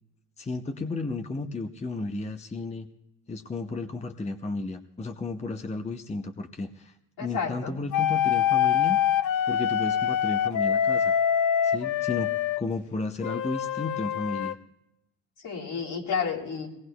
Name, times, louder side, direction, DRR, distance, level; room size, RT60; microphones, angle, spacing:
voice 1, 0.4-2.9 3.3-9.0 9.5-11.1 11.6-14.6, left 3 dB, 15° left, 6 dB, 0.8 m, -33 dB
voice 2, 7.2-7.8 15.4-16.7, left 6 dB, 60° left, -3 dB, 3.6 m, -31 dB
sound 1, 7.9-12.6 13.2-14.5, left 9 dB, 40° left, 0.7 m, -25 dB
23.0 x 18.5 x 2.3 m, 0.89 s
hypercardioid pair, 60°, 45 cm